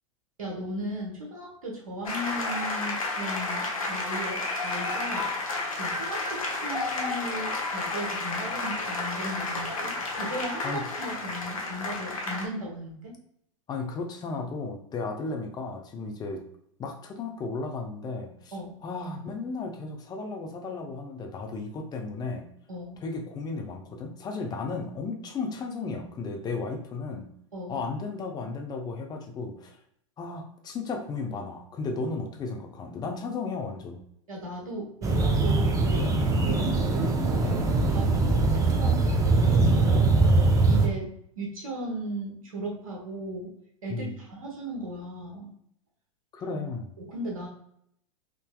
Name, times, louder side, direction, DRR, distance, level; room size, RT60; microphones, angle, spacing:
voice 1, 0.4-5.3 5.7-13.1 18.5-18.8 22.7-23.0 27.5-27.8 34.3-40.1 40.6-43.5 43.8-45.5 47.0-47.5, right 1 dB, 90° right, -2 dB, 1.0 m, -37 dB
sound 1, 2.0-12.5, left 3 dB, 90° left, 0.8 m, -31 dB
voice 2, 13.7-16.4 16.8-18.6 18.8-22.4 23.0-27.3 27.7-29.8 30.2-34.0 38.8-39.1 43.9-44.2 46.3-46.9, left 3 dB, 25° left, 3 dB, 0.6 m, -34 dB
sound 2, 35.0-40.9, right 3 dB, 20° right, 0.5 m, -22 dB
3.7 x 2.7 x 2.2 m, 0.71 s
hypercardioid pair, 105°, 17 cm